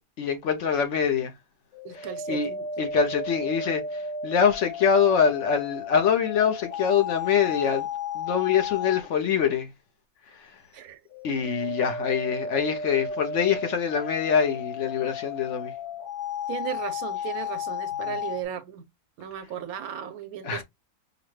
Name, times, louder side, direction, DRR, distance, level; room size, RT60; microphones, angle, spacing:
voice 1, 0.2-1.3 1.9-2.5 2.8-7.9 8.1-9.7 11.2-15.7 18.1-18.2 20.4-20.6, left 7 dB, 60° left, 0.9 m, -24 dB
sound 1, 1.7-9.1 11.1-18.4, left 5 dB, 35° left, 0.9 m, -34 dB
voice 2, 1.8-2.7 10.7-11.0 11.4-11.5 16.5-18.8 19.2-20.6, right 10 dB, 85° right, 1.1 m, -36 dB
4.9 x 2.1 x 3.1 m
omnidirectional pair, 1.5 m